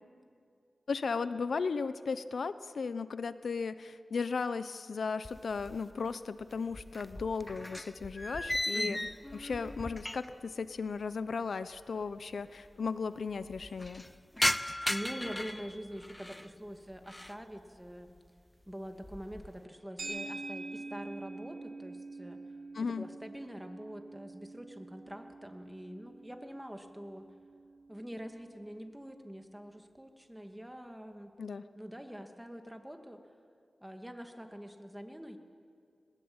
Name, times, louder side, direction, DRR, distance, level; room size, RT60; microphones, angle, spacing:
voice 1, 0.9-9.0 9.3-14.0 22.7-23.1 31.4-31.6, left 5 dB, 80° left, 13 dB, 0.7 m, -36 dB
sound 1, 5.2-6.1 6.4-10.5 10.8-10.9 11.7-11.8 12.0-12.1 12.4-12.9 13.3-16.5 16.9-17.4 17.9-18.3 18.7-19.6, left 1 dB, 15° left, 0.5 m, -37 dB
voice 2, 8.7-9.1 14.9-18.2 18.7-22.4 23.0-27.2 27.9-31.3 31.8-33.2 33.8-35.4, equal, 5° right, 5 dB, 2.3 m, -45 dB
sound 2, 20.0-28.4, right 3 dB, 65° right, 6.4 m, -46 dB
21.5 x 21.0 x 8.8 m, 2.3 s
cardioid pair, 60°, 0 cm